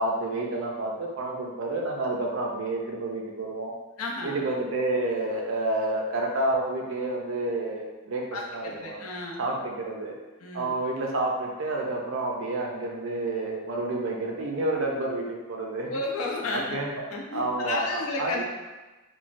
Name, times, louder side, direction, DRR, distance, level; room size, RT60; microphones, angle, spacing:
voice 1, 0.0-3.7 4.2-8.2 8.5-9.0 9.4-10.1 10.5-15.9 16.5-17.0 17.3-18.4, right 2 dB, 65° right, 0 dB, 0.5 m, -29 dB
voice 2, 4.0-4.4 8.3-9.5 10.4-10.7 15.9-16.8 17.1-18.4, left 2 dB, 80° left, -1 dB, 0.5 m, -32 dB
3.0 x 2.1 x 2.5 m, 1.2 s
head